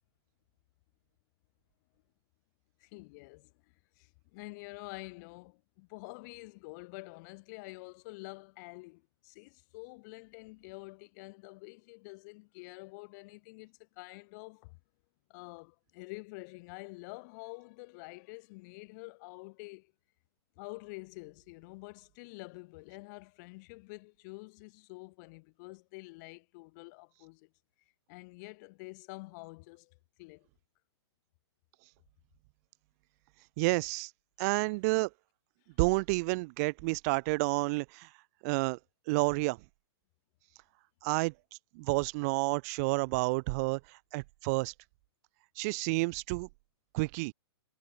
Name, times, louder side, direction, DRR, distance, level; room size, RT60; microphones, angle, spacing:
voice 1, 2.8-3.5 4.0-14.8 15.3-19.9 20.6-27.5 28.1-30.5, left 27 dB, 40° left, 3.6 m, -48 dB
voice 2, 33.6-34.1 34.4-35.1 35.8-38.1 38.4-38.8 39.1-39.6 41.0-41.3 41.8-43.8 44.1-44.7 45.6-46.5 46.9-47.3, right 27 dB, 35° right, 0.4 m, -30 dB
hypercardioid pair, 120°, 14 cm